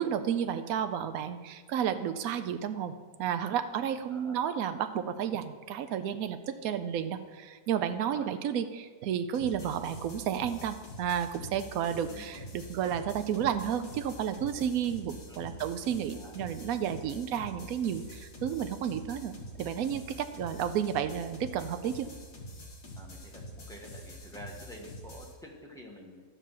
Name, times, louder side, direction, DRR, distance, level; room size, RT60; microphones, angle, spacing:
voice 1, 0.0-2.9 3.2-22.1, right 9 dB, 65° right, 9 dB, 0.9 m, -32 dB
sound 1, 9.3-25.3, equal, 60° left, 2.2 m, -46 dB
voice 2, 12.0-12.4 15.3-15.6 16.1-16.5 19.9-20.1 22.9-26.2, equal, ahead, -2 dB, 1.4 m, -49 dB
12.0 x 5.5 x 7.4 m, 1.5 s
omnidirectional pair, 1.9 m